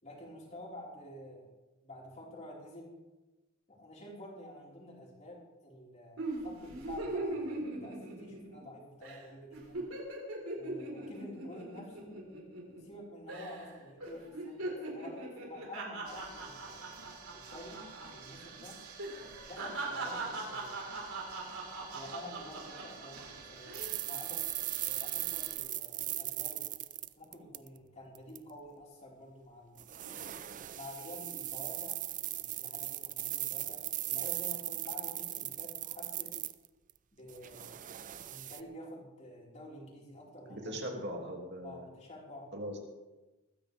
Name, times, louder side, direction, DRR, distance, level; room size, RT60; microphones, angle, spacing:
voice 1, 0.0-1.5 1.8-2.9 3.7-9.8 10.5-12.2 12.7-16.9 17.3-18.8 19.1-20.8 21.9-24.4 24.8-26.7 27.2-30.3 30.7-32.0 32.3-36.3 37.1-37.7 38.2-40.7 41.6-42.5, left 1 dB, 30° left, -4 dB, 4.9 m, -49 dB
sound 1, 6.2-8.7 9.0-9.2 9.5-13.0 13.3-13.7 14.0-18.1 18.3-18.5 19.0-23.1 23.6-24.0, right 2 dB, 70° right, 4.5 m, -40 dB
sound 2, 16.0-25.5, right 5 dB, 90° right, 3.4 m, -51 dB
sound 3, 23.7-27.8 28.1-28.4 29.8-36.9 37.3-38.6, right 14 dB, 35° right, 0.5 m, -38 dB
voice 2, 40.5-41.9 42.5-42.8, equal, 50° right, 1 dB, 2.6 m, -40 dB
21.0 x 15.0 x 3.5 m, 1.1 s
head